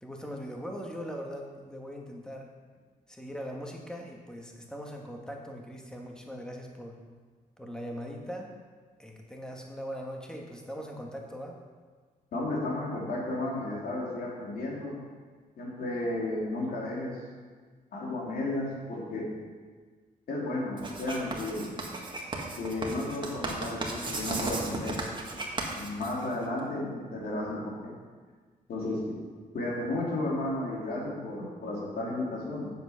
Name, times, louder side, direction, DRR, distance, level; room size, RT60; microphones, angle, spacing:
voice 1, 0.0-2.5 3.1-7.0 7.6-8.6 9.0-11.6, equal, 5° left, 0 dB, 1.5 m, -40 dB
voice 2, 12.3-14.9 15.6-17.2 17.9-19.3 20.3-21.7 22.6-25.0 25.8-27.9 28.7-29.3 29.5-32.7, left 2 dB, 80° left, -4 dB, 3.0 m, -33 dB
Writing, 20.8-26.6, right 2 dB, 30° right, 1.6 m, -35 dB
7.9 x 7.3 x 5.7 m, 1.5 s
cardioid pair, 105°, 15 cm